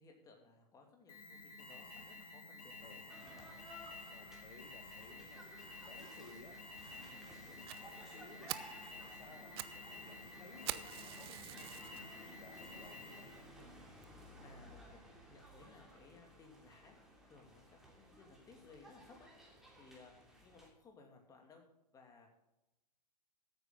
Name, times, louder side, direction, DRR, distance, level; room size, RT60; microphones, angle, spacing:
voice 1, 0.0-3.5 8.9-9.1 14.4-17.0 17.3-19.3 19.8-20.1 20.4-21.6 21.9-22.4, left 4 dB, 15° left, 2 dB, 2.7 m, -61 dB
Alarm, 1.1-13.5, left 2 dB, 60° left, 3.6 m, -52 dB
sound 1, 3.1-20.7, equal, ahead, 2.9 m, -57 dB
voice 2, 4.1-5.5 5.9-13.5, left 3 dB, 75° left, 3 dB, 1.6 m, -59 dB
Fire, 7.7-7.8 8.2-8.3 8.5-8.8 9.3-9.8 10.1-10.2 10.7-12.0 12.6-12.7 13.2-13.3 13.6-13.7 14.0-14.1, right 16 dB, 35° right, 0.6 m, -44 dB
14.5 x 9.1 x 3.9 m, 0.94 s
figure-of-eight pair, 115°, 21 cm